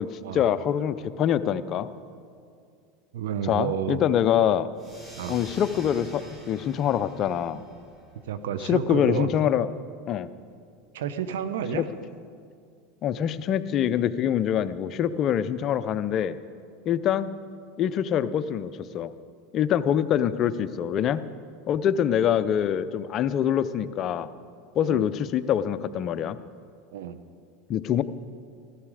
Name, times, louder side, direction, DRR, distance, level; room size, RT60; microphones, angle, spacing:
voice 1, 0.0-1.9 3.5-4.7 5.3-6.2 6.5-7.6 8.7-9.7 10.1-10.3 11.7-11.8 13.0-16.4 16.9-17.3 17.8-19.1 19.5-21.2 21.7-24.3 24.8-26.4 27.7-28.0, left 9 dB, 45° left, 13 dB, 0.6 m, -25 dB
voice 2, 3.1-4.0 5.1-5.4 8.3-9.3 10.9-11.9 24.8-25.1 26.9-27.2, right 8 dB, 80° right, 11 dB, 0.8 m, -31 dB
sound 1, 4.7-9.8, right 1 dB, 20° right, 3.2 m, -47 dB
15.0 x 13.5 x 5.0 m, 2.3 s
hypercardioid pair, 105°, 0 cm